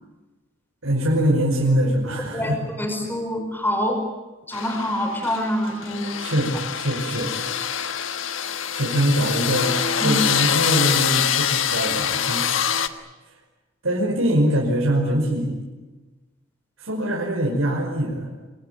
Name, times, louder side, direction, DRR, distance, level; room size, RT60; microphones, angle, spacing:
voice 1, 0.8-2.6 6.2-7.3 8.7-9.7 10.0-12.4 13.8-15.6 16.8-18.3, right 1 dB, 90° right, -2 dB, 5.5 m, -23 dB
voice 2, 2.3-4.0 4.5-6.1 10.0-10.2, equal, 10° left, 3 dB, 5.2 m, -25 dB
sound 1, 4.5-12.9, left 8 dB, 70° left, 1.4 m, -25 dB
27.5 x 20.0 x 9.3 m, 1.2 s
head